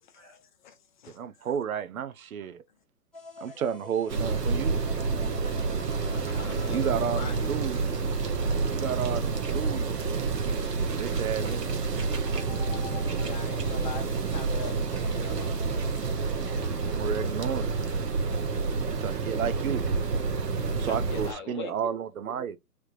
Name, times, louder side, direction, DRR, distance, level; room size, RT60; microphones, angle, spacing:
voice 1, 0.0-1.2 3.5-3.6 6.0-8.3 13.1-15.6 20.6-21.7, left 6 dB, 30° left, 0.7 m, -42 dB
voice 2, 1.1-2.6 3.4-4.8 6.7-7.8 8.7-10.3 10.9-11.7 16.9-17.7 19.0-20.1 20.4-22.6, right 8 dB, 60° right, 0.7 m, -32 dB
sound 1, 3.1-18.1, left 4 dB, ahead, 0.9 m, -49 dB
sound 2, 4.1-21.3, right 4 dB, 80° right, 1.2 m, -29 dB
voice 3, 12.7-13.4 16.2-17.2 18.8-19.0, equal, 15° right, 0.4 m, -54 dB
3.5 x 3.3 x 2.7 m
hypercardioid pair, 140°, 48 cm